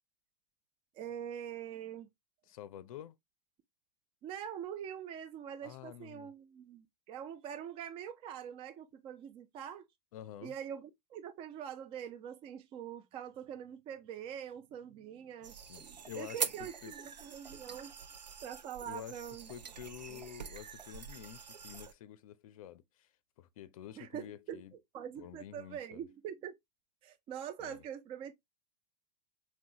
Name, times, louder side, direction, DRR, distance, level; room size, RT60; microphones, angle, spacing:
voice 1, 0.9-2.1 4.2-9.9 10.4-18.0 18.4-19.5 20.1-20.2 24.0-24.6 24.9-26.5 27.0-28.3, right 9 dB, 25° right, 0.4 m, -44 dB
voice 2, 2.5-3.2 5.6-6.3 10.1-10.5 15.7-16.9 18.9-19.2 19.5-23.1 23.4-24.7 25.2-26.1 27.6-27.8, left 11 dB, 55° left, 0.5 m, -49 dB
sound 1, 15.4-21.9, right 6 dB, 90° right, 0.4 m, -44 dB
5.9 x 2.2 x 2.7 m
figure-of-eight pair, 100°, 21 cm